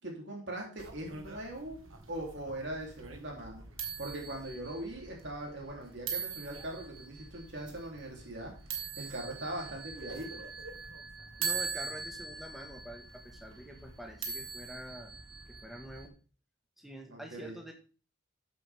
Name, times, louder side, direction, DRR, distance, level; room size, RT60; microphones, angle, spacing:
voice 1, 0.0-1.8 2.1-3.6 4.0-8.5 9.0-10.4 17.1-17.6, right 1 dB, 55° right, 0 dB, 3.5 m, -41 dB
sound 1, 0.8-16.1, right 5 dB, 80° right, 2.0 m, -42 dB
voice 2, 11.4-15.1 15.5-16.1 16.8-17.7, equal, ahead, 2 dB, 1.8 m, -46 dB
13.0 x 7.8 x 3.7 m, 0.36 s
head